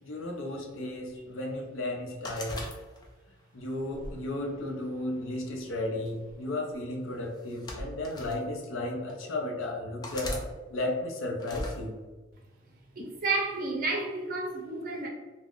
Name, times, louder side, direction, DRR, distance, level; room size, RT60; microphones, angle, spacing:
voice 1, 0.0-2.6 3.5-12.0, left 1 dB, 80° left, 2 dB, 0.5 m, -34 dB
sound 1, 2.2-3.3 3.9-5.1 6.1-6.3 7.3-8.4 9.1-9.2 10.0-10.5 11.4-11.8, left 1 dB, 20° left, 0.3 m, -39 dB
voice 2, 12.9-15.1, right 3 dB, 45° right, -1 dB, 0.5 m, -31 dB
2.4 x 2.1 x 3.5 m, 1.3 s
head